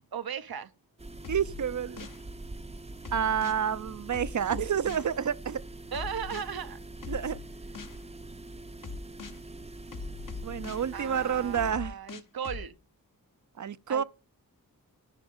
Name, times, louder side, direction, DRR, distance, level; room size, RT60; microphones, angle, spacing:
voice 1, 0.1-0.7 5.9-6.8 10.9-12.8 13.9-14.0, right 7 dB, 85° right, 0.8 m, -36 dB
sound 1, 1.0-11.7, right 2 dB, 20° right, 0.6 m, -44 dB
sound 2, 1.2-2.2 3.0-3.6 4.1-5.1 5.9-6.4 7.0-8.0 8.8-9.4 9.9-10.9 11.5-12.7, left 4 dB, 65° left, 1.0 m, -40 dB
voice 2, 1.3-2.1 3.1-5.6 7.1-7.4 10.4-11.9 13.6-14.0, right 8 dB, 55° right, 0.6 m, -29 dB
11.0 x 5.3 x 5.4 m
wide cardioid pair, 60°, 36 cm